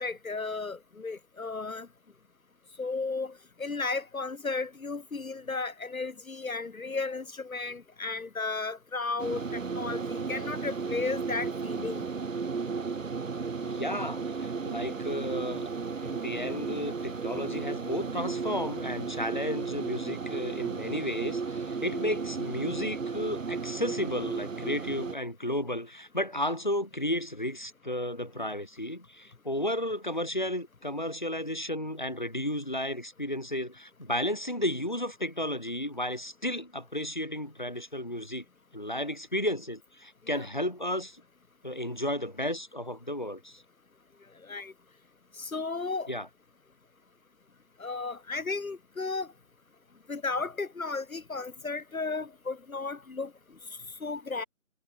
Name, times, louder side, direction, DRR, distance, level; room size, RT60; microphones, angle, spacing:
voice 1, 0.0-1.9 2.8-12.1 40.3-40.4 44.5-44.7 45.4-46.1 47.8-49.3 50.1-53.3 54.0-54.4, left 3 dB, 75° left, 1.0 m, -34 dB
sound 1, 9.2-25.1, right 5 dB, 65° right, 0.7 m, -34 dB
voice 2, 13.6-15.7 16.0-38.4 38.7-41.2 41.6-43.6 46.1-46.3, left 1 dB, 35° left, 1.6 m, -33 dB
figure-of-eight pair, 175°, 42 cm